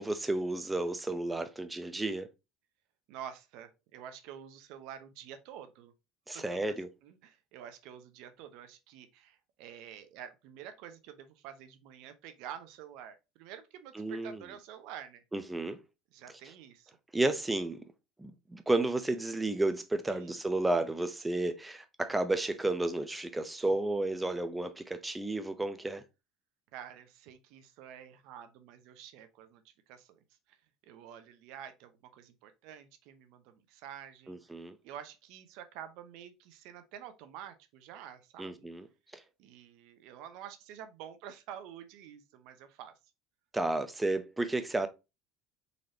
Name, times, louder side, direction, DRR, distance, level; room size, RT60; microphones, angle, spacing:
voice 1, 0.0-2.3 6.3-6.9 13.9-14.4 15.3-15.8 17.1-17.9 18.2-26.0 34.3-34.7 38.4-38.9 39.1-39.2 43.5-44.9, right 2 dB, 10° right, 0.6 m, -32 dB
voice 2, 3.1-5.9 6.3-6.8 7.0-15.2 16.1-16.9 20.1-20.4 26.7-30.2 30.5-30.6 30.8-34.4 34.8-38.7 39.4-42.9, right 9 dB, 70° right, 0.7 m, -48 dB
4.0 x 3.2 x 2.7 m
supercardioid pair, 115°, 0 cm